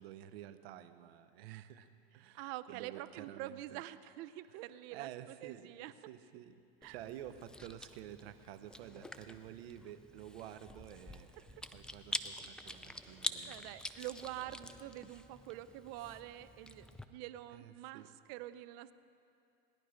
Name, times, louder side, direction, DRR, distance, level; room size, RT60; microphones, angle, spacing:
voice 1, 0.0-3.8 4.5-5.7 6.1-6.6 6.9-13.6 17.5-18.1, right 11 dB, 75° right, 11 dB, 0.9 m, -51 dB
voice 2, 2.3-5.9 6.8-6.9 13.5-18.9, right 14 dB, 50° right, 14 dB, 0.6 m, -46 dB
Chewing mastication, 6.8-17.0, left 1 dB, 5° left, 0.3 m, -46 dB
19.0 x 11.0 x 5.1 m, 2.5 s
supercardioid pair, 115°, 31 cm